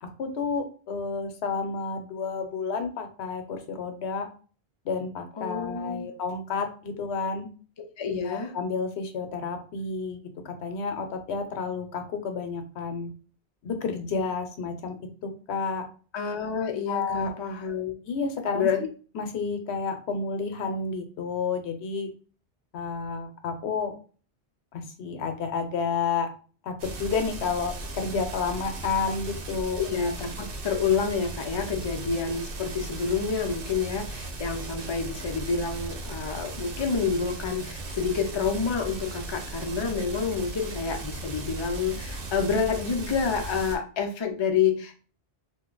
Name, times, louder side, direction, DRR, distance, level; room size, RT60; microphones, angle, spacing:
voice 1, 0.0-4.3 4.8-7.5 8.2-13.1 13.6-15.0 15.2-15.9 16.9-17.3 18.1-18.7 19.1-22.1 22.7-23.9 24.7-26.3 26.6-29.8, left 5 dB, 75° left, 6 dB, 0.9 m, -30 dB
voice 2, 5.4-6.1 8.0-8.5 16.1-18.0 18.5-18.8 29.7-45.0, left 5 dB, 45° left, 3 dB, 0.3 m, -28 dB
sound 1, 26.8-43.8, right 2 dB, 60° right, 0.8 m, -37 dB
2.8 x 2.1 x 3.8 m, 0.39 s
omnidirectional pair, 1.1 m